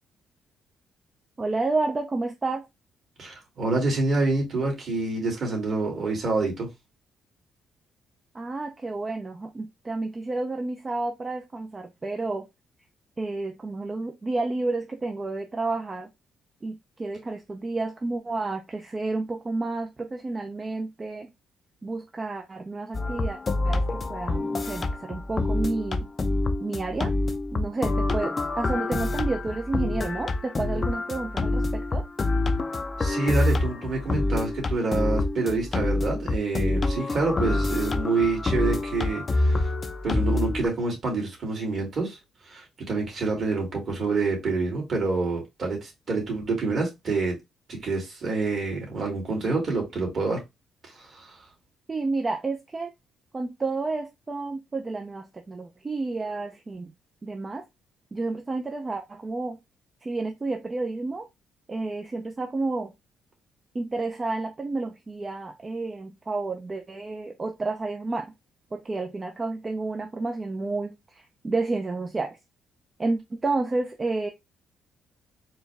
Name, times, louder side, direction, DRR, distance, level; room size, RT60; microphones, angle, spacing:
voice 1, 1.4-2.7 8.3-12.5 13.2-16.1 16.6-21.3 21.8-23.4 23.6-26.1 26.6-27.1 27.5-32.0 51.9-52.9 53.3-56.9 57.2-57.6 58.1-59.6 60.0-61.3 61.7-62.9 63.7-68.3 68.7-72.4 73.0-74.3, right 3 dB, 25° right, 0.5 m, -30 dB
voice 2, 3.2-6.7 33.0-39.7 40.0-42.2 42.5-47.4 47.7-50.4 51.0-51.4, right 3 dB, 50° right, 2.2 m, -27 dB
sound 1, 22.9-40.7, left 2 dB, 35° left, 0.5 m, -26 dB
4.4 x 2.3 x 3.3 m
cardioid pair, 90°, 0 cm